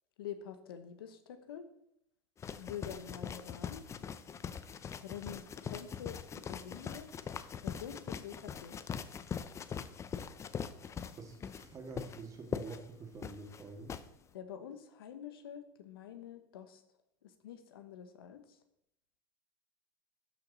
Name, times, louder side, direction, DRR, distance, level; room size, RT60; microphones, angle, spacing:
voice 1, 0.2-1.7 2.6-3.8 5.0-7.1 7.6-8.9 14.3-16.8 17.2-18.6, left 9 dB, 85° left, 10 dB, 1.1 m, -46 dB
sound 1, 2.4-14.0, left 7 dB, 25° left, 0.6 m, -42 dB
voice 2, 11.0-13.9, right 4 dB, 25° right, 4 dB, 2.0 m, -47 dB
12.5 x 5.8 x 4.1 m, 0.79 s
supercardioid pair, 110°, 12 cm